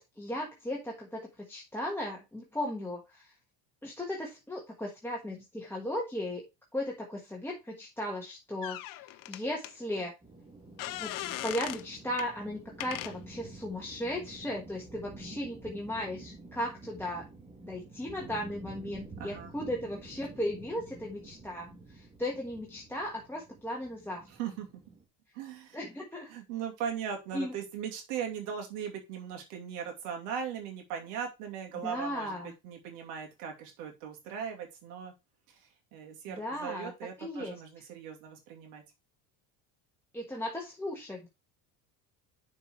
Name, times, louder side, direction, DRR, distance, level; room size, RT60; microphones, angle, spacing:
voice 1, 0.0-3.3 3.8-6.5 6.7-10.1 11.0-11.1 11.4-17.3 17.6-24.3 25.7-26.3 27.3-27.5 31.8-32.5 36.3-37.6 40.1-41.3, left 1 dB, 5° left, -2 dB, 1.4 m, -36 dB
sound 1, 8.6-9.7 10.8-11.9 12.2-12.3 12.8-13.2, left 16 dB, 50° left, 0.6 m, -38 dB
sound 2, 10.2-25.0, right 2 dB, 10° right, 2.4 m, -49 dB
voice 2, 19.2-19.5 24.4-24.7 25.3-25.8 26.3-32.4 32.6-35.1 35.5-35.6 35.9-38.8, right 8 dB, 85° right, 2 dB, 2.6 m, -39 dB
6.7 x 4.6 x 4.5 m, 0.24 s
supercardioid pair, 115°, 44 cm